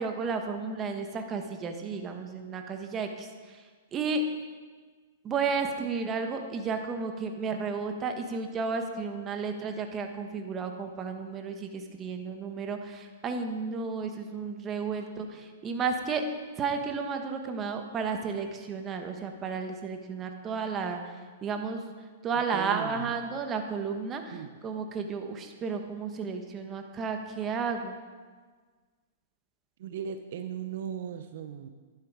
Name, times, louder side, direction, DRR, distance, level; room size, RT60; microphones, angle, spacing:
voice 1, 0.0-3.7 3.9-4.2 5.2-16.2 16.6-21.2 21.4-21.8 22.2-24.4 24.6-28.0, right 5 dB, 20° right, 5 dB, 1.3 m, -33 dB
voice 2, 22.3-23.1 24.3-24.6 29.8-31.7, right 8 dB, 60° right, 9 dB, 0.7 m, -38 dB
11.5 x 11.5 x 4.9 m, 1.5 s
hypercardioid pair, 140°, 0 cm